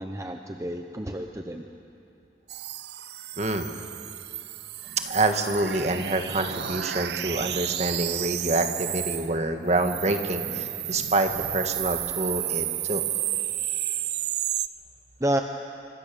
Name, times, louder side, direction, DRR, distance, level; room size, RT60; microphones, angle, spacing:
voice 1, 0.0-1.7 15.2-15.4, right 1 dB, 15° right, 4 dB, 0.8 m, -29 dB
sound 1, 2.5-9.3 9.7-14.7, right 13 dB, 60° right, 0.6 m, -32 dB
voice 2, 3.4-3.7 5.1-13.0, right 2 dB, 40° right, 6 dB, 1.6 m, -27 dB
26.0 x 25.0 x 7.0 m, 2.7 s
head